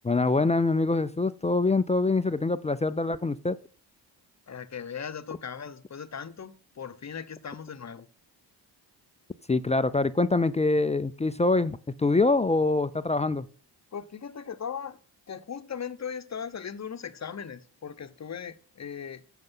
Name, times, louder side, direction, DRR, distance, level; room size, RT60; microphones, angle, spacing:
voice 1, 0.0-3.6 9.5-13.5, left 3 dB, 15° left, 0.4 m, -24 dB
voice 2, 4.5-8.1 13.9-15.0 15.3-19.2, left 7 dB, 35° left, 0.8 m, -38 dB
7.9 x 5.2 x 5.4 m
supercardioid pair, 45°, 48 cm